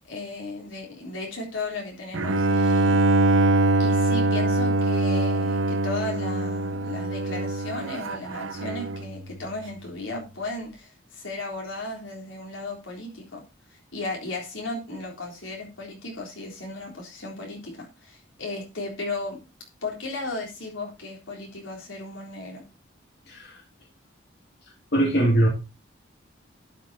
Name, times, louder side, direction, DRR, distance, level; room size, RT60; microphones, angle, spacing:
voice 1, 0.1-3.0 3.8-13.4 13.9-19.4 19.8-22.6, left 2 dB, 80° left, 3.8 m, -35 dB
Bowed string instrument, 2.1-9.2, right 2 dB, 90° right, 0.8 m, -23 dB
voice 2, 24.9-25.5, right 1 dB, 55° left, 3.2 m, -21 dB
12.0 x 6.1 x 4.2 m
head